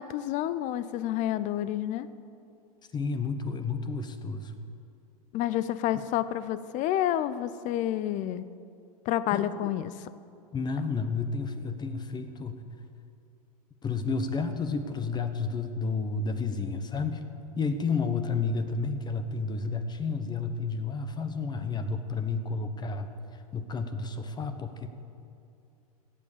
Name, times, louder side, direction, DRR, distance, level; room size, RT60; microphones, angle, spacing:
voice 1, 0.0-2.1 5.3-8.4 9.0-10.1, left 12 dB, 40° left, 15 dB, 0.6 m, -29 dB
voice 2, 2.9-4.5 9.3-9.4 10.5-12.6 13.8-17.3 17.6-23.1 23.5-24.9, left 4 dB, 20° left, 9 dB, 1.1 m, -31 dB
16.0 x 8.3 x 6.9 m, 2.6 s
hypercardioid pair, 95°, 19 cm